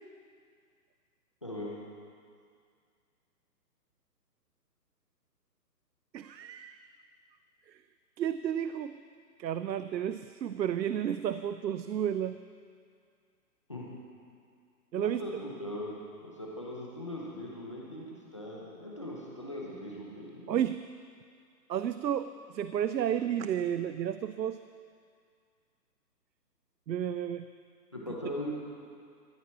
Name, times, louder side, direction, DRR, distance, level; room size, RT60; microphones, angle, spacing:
voice 1, 1.4-1.7 13.7-13.8 15.0-15.9 16.2-20.5 27.9-28.5, left 1 dB, 20° left, -4 dB, 0.8 m, -40 dB
voice 2, 6.1-6.8 8.2-8.9 9.4-12.4 14.9-15.2 20.5-20.8 21.7-24.6 26.9-27.4, right 9 dB, 85° right, 11 dB, 0.7 m, -32 dB
14.0 x 9.1 x 7.3 m, 2.2 s
hypercardioid pair, 175°, 50 cm